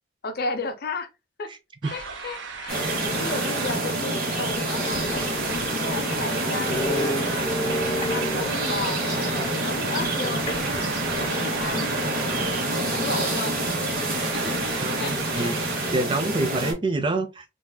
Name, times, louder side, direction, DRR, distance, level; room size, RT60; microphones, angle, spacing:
voice 1, 0.2-1.1 1.4-1.5 1.9-5.2 5.8-7.5 8.0-10.4 11.1-11.8 12.9-13.6 14.0-15.5, left 3 dB, 55° left, 0.6 m, -34 dB
sound 1, 1.8-15.9, right 5 dB, 70° right, 0.7 m, -37 dB
sound 2, 2.7-16.7, right 1 dB, 50° right, 1.1 m, -27 dB
sound 3, 4.7-8.8 10.5-11.6, equal, 20° left, 0.8 m, -32 dB
voice 2, 14.8-15.5 15.9-17.4, right 2 dB, 25° right, 0.4 m, -26 dB
4.0 x 2.3 x 2.2 m
head